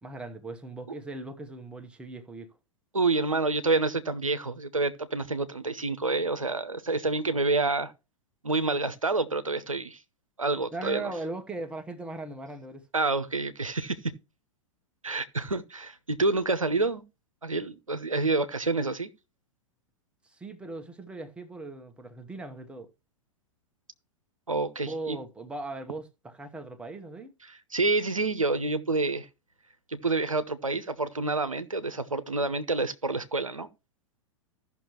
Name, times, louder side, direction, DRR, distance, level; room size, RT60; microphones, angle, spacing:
voice 1, 0.0-2.6 10.7-12.8 20.2-22.9 24.8-27.3, right 2 dB, 5° right, 0.8 m, -39 dB
voice 2, 2.9-7.9 8.4-10.0 10.4-11.1 12.9-14.0 15.0-17.0 17.4-19.1 24.5-25.2 27.7-29.3 29.9-33.7, right 3 dB, 85° right, 0.7 m, -28 dB
15.0 x 5.9 x 3.0 m
figure-of-eight pair, 100°, 17 cm